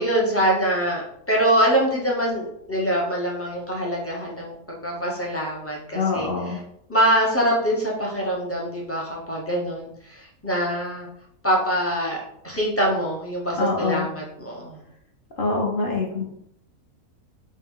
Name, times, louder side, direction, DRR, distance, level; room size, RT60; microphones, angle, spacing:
voice 1, 0.0-6.3 6.9-11.1 11.4-14.8, right 1 dB, 20° left, -4 dB, 0.4 m, -24 dB
voice 2, 5.9-6.6 13.6-14.1 15.4-16.2, left 3 dB, 45° left, -1 dB, 0.7 m, -24 dB
4.1 x 2.2 x 3.6 m, 0.71 s
omnidirectional pair, 1.6 m